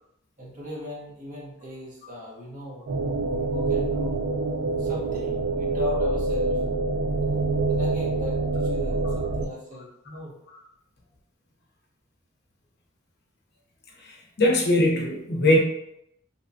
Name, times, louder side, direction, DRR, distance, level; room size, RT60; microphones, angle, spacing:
voice 1, 0.4-2.8 3.5-4.2 4.8-6.6 7.7-10.4, left 2 dB, 35° right, -5 dB, 0.8 m, -38 dB
sound 1, 2.9-9.5, right 3 dB, 80° right, 0.4 m, -26 dB
voice 2, 14.0-15.6, left 1 dB, 50° left, -2 dB, 0.6 m, -21 dB
2.8 x 2.2 x 2.5 m, 0.79 s
head